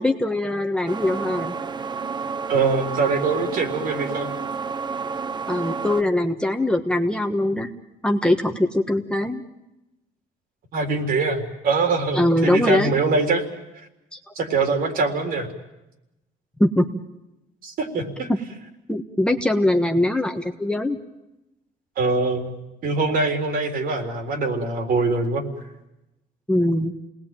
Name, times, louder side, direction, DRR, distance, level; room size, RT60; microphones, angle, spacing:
voice 1, 0.0-1.5 5.5-7.7 8.0-9.4 12.1-12.9 14.1-14.2 16.6-16.9 18.9-21.0 26.5-26.9, left 1 dB, 5° left, 4 dB, 1.4 m, -22 dB
sound 1, 0.9-6.0, right 5 dB, 25° right, 0.8 m, -30 dB
voice 2, 2.5-4.3 10.7-13.4 14.4-15.5 17.6-18.3 22.0-25.4, right 3 dB, 60° right, 5 dB, 3.9 m, -23 dB
28.0 x 19.5 x 9.1 m, 0.96 s
cardioid pair, 110°, 17 cm